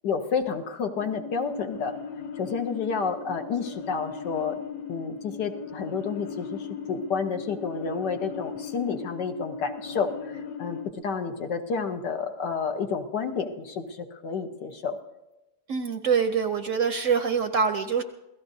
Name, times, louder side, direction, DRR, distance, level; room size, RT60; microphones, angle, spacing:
voice 1, 0.0-2.0 2.4-4.6 4.9-15.0, left 5 dB, 75° left, 5 dB, 1.8 m, -30 dB
sound 1, 1.0-10.9, left 6 dB, 60° left, 1.0 m, -38 dB
voice 2, 15.7-18.0, right 6 dB, 60° right, 8 dB, 0.9 m, -25 dB
27.5 x 17.0 x 2.7 m, 0.99 s
omnidirectional pair, 1.9 m